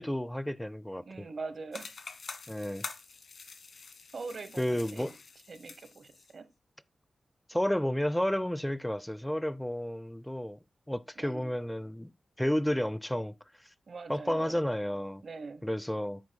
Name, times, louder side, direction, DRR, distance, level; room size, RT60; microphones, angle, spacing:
voice 1, 0.0-1.3 2.5-2.8 4.6-5.1 7.5-10.6 10.9-12.1 12.4-13.4 14.1-15.2 15.6-16.2, equal, 5° left, 0.4 m, -31 dB
voice 2, 1.0-1.9 4.1-5.2 5.5-6.5 11.2-11.5 13.9-14.6 15.2-15.7, right 4 dB, 50° right, 0.9 m, -43 dB
sound 1, 1.7-6.3, left 4 dB, 60° left, 1.3 m, -46 dB
9.4 x 9.4 x 2.2 m
wide cardioid pair, 145°, 0 cm